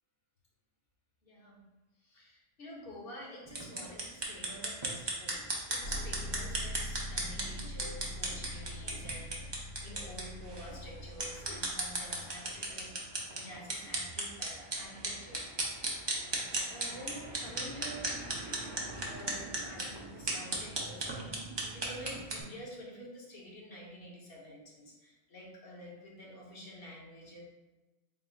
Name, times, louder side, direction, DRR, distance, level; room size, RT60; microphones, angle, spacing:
voice 1, 1.2-1.6 2.0-12.9 13.3-15.7 16.7-18.3 18.7-27.4, equal, 50° left, -4 dB, 1.1 m, -49 dB
Sonicsnaps-OM-FR-Taper-sur-unpoteau, 3.5-22.4, right 2 dB, 35° right, 0.4 m, -37 dB
sound 1, 5.8-12.7, equal, 65° left, 1.3 m, -43 dB
3.9 x 2.3 x 3.9 m, 1.1 s
omnidirectional pair, 1.3 m